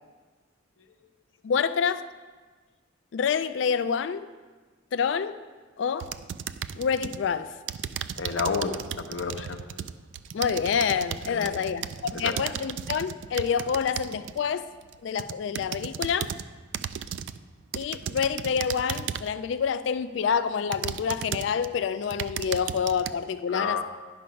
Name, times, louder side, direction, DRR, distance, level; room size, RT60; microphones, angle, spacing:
voice 1, 1.4-2.0 3.1-4.3 4.9-5.3 5.8-6.1 6.7-7.5 10.3-14.7 15.0-16.3 17.7-23.8, left 6 dB, 65° left, 13 dB, 0.3 m, -27 dB
sound 1, 6.0-7.2 7.7-14.4 14.9-16.5 16.7-17.4 17.7-19.4 20.0-20.1 20.7-21.7 22.0-23.1, right 9 dB, 65° right, 0.3 m, -35 dB
voice 2, 8.2-9.6 11.3-11.6 12.1-12.5 23.5-23.8, left 5 dB, 85° left, 6 dB, 0.8 m, -30 dB
10.5 x 5.7 x 5.2 m, 1.4 s
head